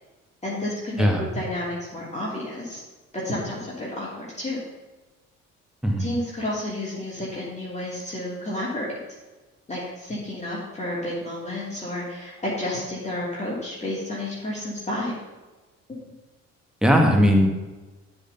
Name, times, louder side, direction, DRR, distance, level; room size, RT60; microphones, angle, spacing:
voice 1, 0.4-2.8 3.1-4.6 6.0-9.0 9.7-15.2, left 1 dB, 15° left, -6 dB, 2.6 m, -31 dB
voice 2, 16.8-17.5, equal, ahead, 1 dB, 1.7 m, -18 dB
12.5 x 4.2 x 5.6 m, 1.2 s
figure-of-eight pair, 45°, 39 cm